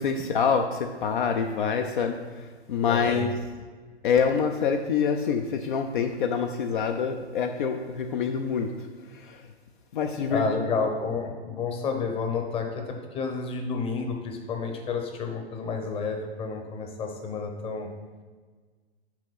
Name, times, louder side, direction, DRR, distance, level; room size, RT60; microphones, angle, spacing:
voice 1, 0.0-3.3 4.0-8.7 9.1-9.4 9.9-10.4, left 6 dB, 50° left, 4 dB, 0.6 m, -26 dB
voice 2, 2.9-3.2 10.3-17.9, left 4 dB, 15° left, 3 dB, 0.9 m, -30 dB
6.0 x 5.1 x 5.7 m, 1.4 s
figure-of-eight pair, 110°, 32 cm